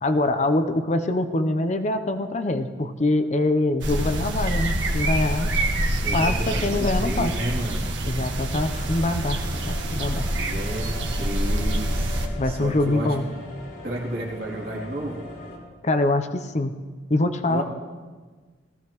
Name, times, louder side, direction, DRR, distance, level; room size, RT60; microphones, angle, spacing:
voice 1, 0.0-5.5 6.1-7.3 8.1-9.4 9.7-10.3 12.3-13.3 15.8-16.8 17.1-17.6, left 2 dB, 40° left, 8 dB, 0.6 m, -24 dB
sound 1, 3.8-12.3, right 1 dB, 75° right, 1.4 m, -26 dB
voice 2, 6.0-7.9 10.4-13.2 13.8-15.2 17.5-17.6, right 1 dB, 55° right, -3 dB, 2.8 m, -32 dB
sound 2, 8.7-15.6, left 2 dB, 70° left, 3.2 m, -40 dB
18.0 x 14.5 x 3.0 m, 1.4 s
head